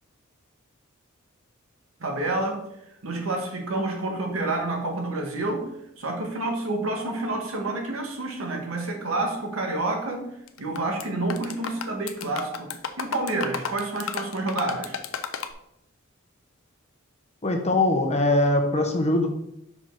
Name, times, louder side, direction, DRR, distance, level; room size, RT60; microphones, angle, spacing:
voice 1, 2.0-2.6 3.0-5.7 6.0-10.2 10.6-15.0, right 2 dB, 80° right, 3 dB, 1.5 m, -29 dB
sound 1, 10.5-11.0 11.3-15.5, left 6 dB, 70° left, 0.6 m, -33 dB
voice 2, 17.4-19.3, left 2 dB, 30° left, 4 dB, 1.0 m, -22 dB
5.8 x 5.2 x 4.5 m, 0.80 s
head